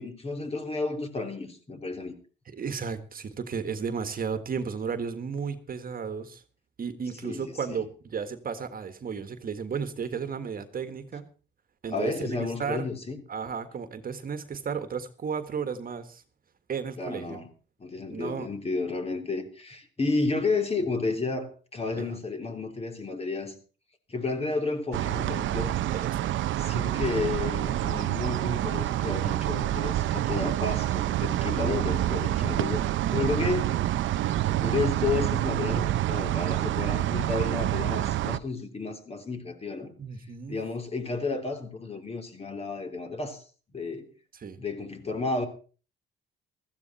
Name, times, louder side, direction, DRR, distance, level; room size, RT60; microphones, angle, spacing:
voice 1, 0.0-2.1 7.2-7.8 11.9-13.2 17.0-17.5 17.8-23.6 24.1-25.7 26.6-33.7 34.6-39.9 40.5-43.4 43.7-44.1 44.6-45.5, left 3 dB, 30° left, 3.4 m, -32 dB
voice 2, 2.5-6.4 6.8-11.3 11.8-12.9 13.3-16.2 16.7-17.4 18.1-18.5 21.9-22.2 25.9-26.3 33.0-33.4 40.0-40.6 44.3-44.6, right 6 dB, 45° right, 1.7 m, -34 dB
sound 1, 24.9-38.4, right 13 dB, 75° right, 0.7 m, -27 dB
15.5 x 14.0 x 4.3 m
cardioid pair, 90°, 20 cm